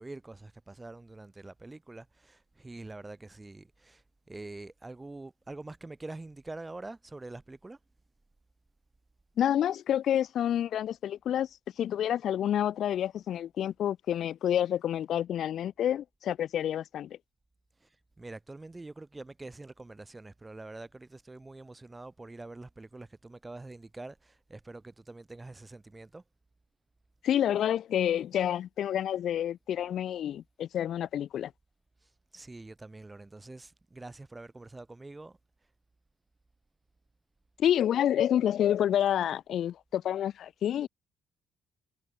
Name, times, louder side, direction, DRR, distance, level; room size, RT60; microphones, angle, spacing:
voice 1, 0.0-4.0 4.3-7.8 17.8-17.9 18.2-26.2 32.3-35.4, right 2 dB, 20° right, 5.0 m, -45 dB
voice 2, 9.4-11.5 11.8-17.2 27.2-31.5 37.6-40.9, left 10 dB, 70° left, 1.4 m, -28 dB
cardioid pair, 90°, 0 cm